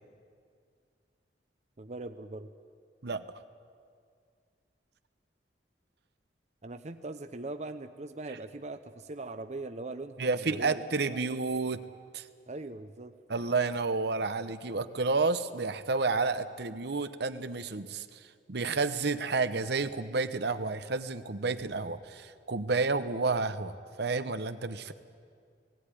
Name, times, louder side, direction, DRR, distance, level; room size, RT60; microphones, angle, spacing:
voice 1, 1.8-2.5 6.6-10.7 11.1-11.2 12.5-13.1, right 2 dB, 40° right, 9 dB, 0.7 m, -41 dB
voice 2, 10.2-11.8 12.1-12.3 13.3-18.2 18.5-23.7 24.0-24.9, right 4 dB, 65° right, 11 dB, 0.9 m, -30 dB
18.0 x 17.5 x 9.9 m, 2.2 s
head